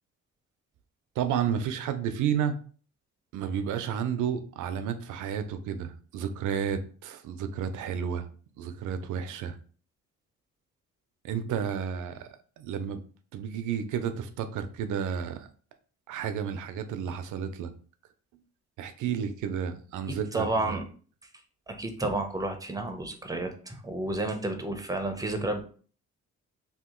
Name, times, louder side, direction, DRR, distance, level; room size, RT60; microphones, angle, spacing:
voice 1, 1.2-2.5 3.3-8.3 8.6-9.6 11.2-12.3 12.6-13.0 13.3-15.5 16.1-17.7 18.8-20.8, right 8 dB, 80° right, 10 dB, 0.5 m, -31 dB
voice 2, 20.1-20.8 21.7-25.6, right 2 dB, 10° right, 6 dB, 0.6 m, -31 dB
2.9 x 2.4 x 3.6 m, 0.41 s
cardioid pair, 90°, 30 cm